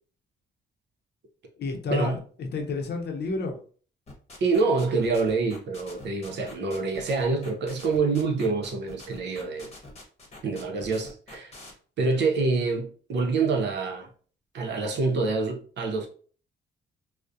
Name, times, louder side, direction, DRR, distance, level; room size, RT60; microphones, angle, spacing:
voice 1, 1.6-3.6, left 3 dB, 55° left, 0.6 m, -30 dB
sound 1, 4.1-11.7, left 2 dB, 30° left, 0.9 m, -45 dB
voice 2, 4.4-9.7 10.4-11.6 12.0-14.1 14.5-16.1, right 3 dB, 60° right, 0.6 m, -26 dB
2.3 x 2.1 x 2.6 m
cardioid pair, 90°, 20 cm